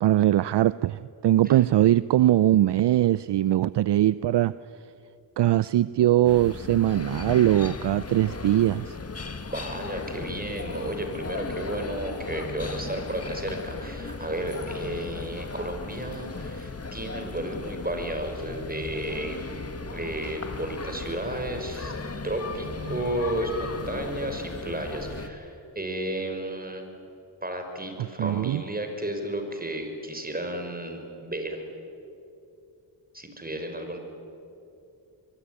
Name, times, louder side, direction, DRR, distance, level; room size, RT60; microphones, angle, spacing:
voice 1, 0.0-4.5 5.4-9.0 28.2-28.6, right 13 dB, 60° right, 17 dB, 0.6 m, -21 dB
sound 1, 6.2-25.3, left 4 dB, 30° left, 1.8 m, -36 dB
voice 2, 9.4-19.4 19.9-21.9 22.2-26.9 27.4-31.6 33.1-34.0, right 1 dB, 20° right, 5 dB, 6.0 m, -33 dB
24.0 x 23.5 x 10.0 m, 2.6 s
cardioid pair, 65°, 46 cm